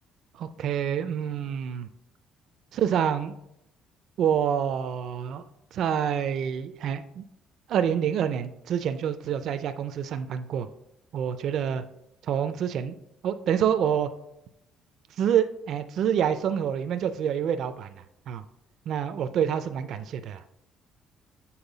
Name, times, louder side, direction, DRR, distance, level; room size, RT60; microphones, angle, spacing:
voice 1, 0.3-1.9 2.7-3.4 4.2-5.4 5.7-7.2 7.7-10.7 11.1-11.8 12.2-12.9 13.2-14.1 15.2-17.9 18.3-18.4 18.9-20.4, right 8 dB, 55° right, 9 dB, 0.4 m, -27 dB
7.1 x 4.3 x 3.9 m, 0.81 s
cardioid pair, 160°, 0 cm